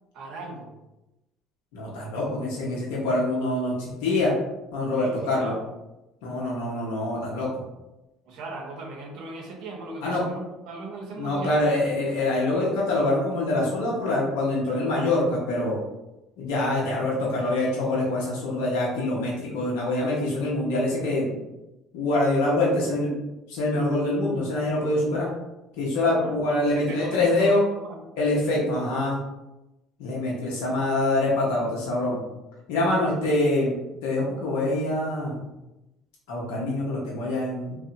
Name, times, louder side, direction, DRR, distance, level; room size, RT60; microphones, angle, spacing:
voice 1, 0.1-0.8 4.8-5.6 8.3-11.6 26.2-28.0, right 2 dB, 70° right, 0 dB, 0.6 m, -39 dB
voice 2, 1.7-4.3 4.7-5.5 6.2-7.5 10.0-10.2 11.2-15.8 16.4-21.4 21.9-23.1 23.5-25.3 25.8-27.6 28.2-29.2 30.0-32.2 32.7-35.4 36.3-37.8, left 2 dB, 80° left, -5 dB, 0.6 m, -25 dB
2.7 x 2.0 x 2.5 m, 0.98 s
hypercardioid pair, 70°, 0 cm